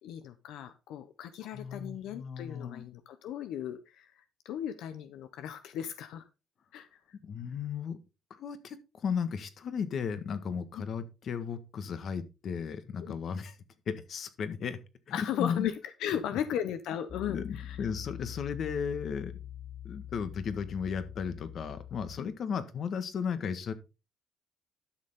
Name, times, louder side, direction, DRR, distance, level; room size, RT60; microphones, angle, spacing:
voice 1, 0.0-6.2 6.7-6.9 10.7-10.8 13.0-13.1 15.1-17.9 22.2-22.3, left 10 dB, 85° left, 10 dB, 0.9 m, -36 dB
voice 2, 1.5-2.8 7.2-8.0 8.3-13.5 13.9-14.8 15.1-15.7 17.3-19.3 19.8-23.7, left 6 dB, 50° left, 11 dB, 1.5 m, -35 dB
Piano, 17.1-22.2, left 11 dB, 25° left, 0.8 m, -44 dB
12.0 x 6.7 x 3.6 m, 0.28 s
cardioid pair, 125°, 0 cm